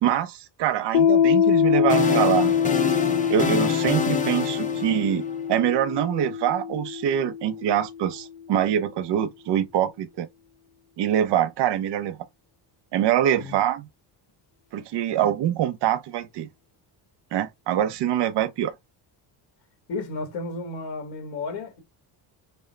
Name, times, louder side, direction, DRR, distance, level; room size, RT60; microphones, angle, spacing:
voice 1, 0.0-2.6 3.3-10.3 11.0-12.2 12.9-13.9 14.7-16.5 17.3-18.7, right 10 dB, 70° right, 0.8 m, -24 dB
Piano, 0.9-8.2, left 8 dB, 65° left, 0.6 m, -24 dB
sound 1, 1.5-5.7, left 6 dB, 20° left, 0.4 m, -28 dB
voice 2, 19.9-21.8, left 3 dB, 90° left, 1.7 m, -33 dB
5.3 x 2.1 x 3.1 m
cardioid pair, 150°, 43 cm